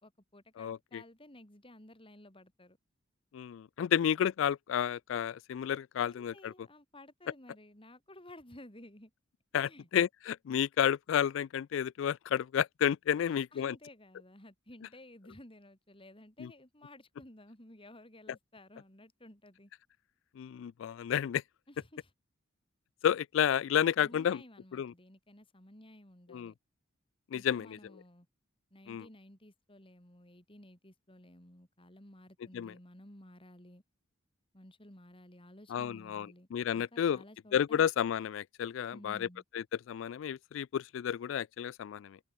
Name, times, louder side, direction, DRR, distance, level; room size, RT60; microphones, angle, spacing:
voice 1, 0.0-2.8 6.1-9.1 9.6-9.9 13.2-19.7 21.7-22.1 24.0-26.5 27.3-28.3 28.7-33.8 34.5-36.5 36.7-37.9 38.9-39.4, left 1 dB, 25° left, 5.1 m, -55 dB
voice 2, 0.6-1.0 3.3-6.5 9.5-13.8 16.4-16.5 20.4-21.4 23.0-24.4 24.7-24.9 26.3-26.5 27.3-27.8 28.9-29.1 32.5-32.7 35.7-37.2 37.5-39.3 39.5-42.2, left 9 dB, 70° left, 0.3 m, -31 dB
head